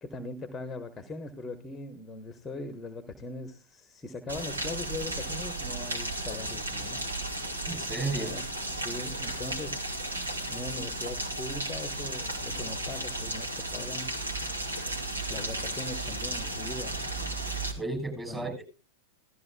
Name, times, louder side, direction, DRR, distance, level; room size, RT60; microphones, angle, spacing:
voice 1, 0.0-7.0 8.1-9.9 10.5-14.1 15.3-17.1 18.3-18.5, left 2 dB, 15° left, 9 dB, 1.2 m, -40 dB
Rain, 4.3-17.7, right 2 dB, 80° right, 2.5 m, -34 dB
voice 2, 7.7-8.3 17.8-18.6, right 2 dB, 15° right, 1 dB, 6.8 m, -33 dB
17.5 x 13.5 x 2.3 m, 0.33 s
figure-of-eight pair, 90°, 0 cm